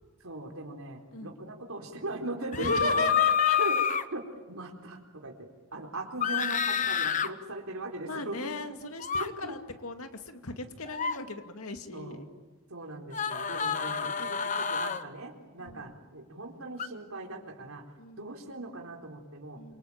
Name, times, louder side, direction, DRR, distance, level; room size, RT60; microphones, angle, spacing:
voice 1, 0.2-3.1 3.6-3.8 4.1-4.2 4.5-8.4 8.7-8.9 9.3-9.6 11.9-12.2 12.7-17.8 18.2-19.6, right 2 dB, 75° right, 3 dB, 4.2 m, -39 dB
voice 2, 2.5-3.7 8.0-12.3 15.6-15.9 18.0-18.3 19.6-19.8, left 3 dB, 85° left, 6 dB, 2.4 m, -36 dB
sound 1, 2.5-4.0 6.2-7.3 9.0-9.3 10.9-11.2 13.1-15.0 16.8-16.9, left 7 dB, 35° left, 1.0 m, -28 dB
27.0 x 25.0 x 8.9 m, 1.2 s
head